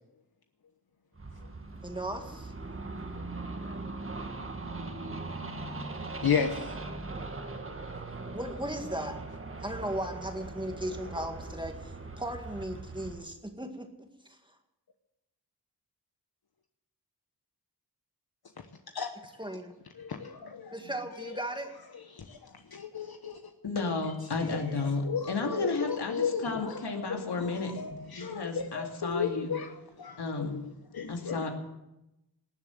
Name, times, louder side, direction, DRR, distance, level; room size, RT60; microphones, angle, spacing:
sound 1, 1.2-13.2, right 3 dB, 35° right, 1.6 m, -40 dB
voice 1, 1.8-2.5 8.3-9.2 9.6-13.9 14.3-14.4 19.4-19.8 20.7-21.7, right 1 dB, 10° right, 4 dB, 1.9 m, -36 dB
voice 2, 6.2-6.8 18.9-19.1 20.0-20.9 21.2-21.4 21.9-23.5 24.5-31.5, left 6 dB, 65° left, 6 dB, 1.2 m, -34 dB
voice 3, 23.6-25.0 25.3-27.7 28.1-29.5 30.2-30.6 31.1-31.5, left 3 dB, 90° left, 2 dB, 2.6 m, -32 dB
19.5 x 7.4 x 9.2 m, 0.93 s
wide cardioid pair, 105°, 39 cm